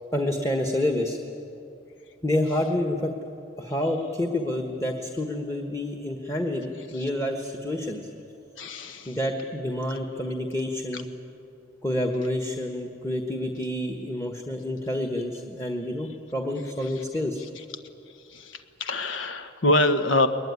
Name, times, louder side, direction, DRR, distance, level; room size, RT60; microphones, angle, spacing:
voice 1, 0.1-1.2 2.2-3.1 3.6-8.1 9.1-11.1 11.8-17.4, left 1 dB, 15° left, 3 dB, 1.4 m, -28 dB
voice 2, 8.6-9.2 10.9-11.0 16.9-17.0 17.5-17.6 18.3-20.3, left 2 dB, 85° left, 8 dB, 1.5 m, -25 dB
21.0 x 21.0 x 9.6 m, 2.7 s
head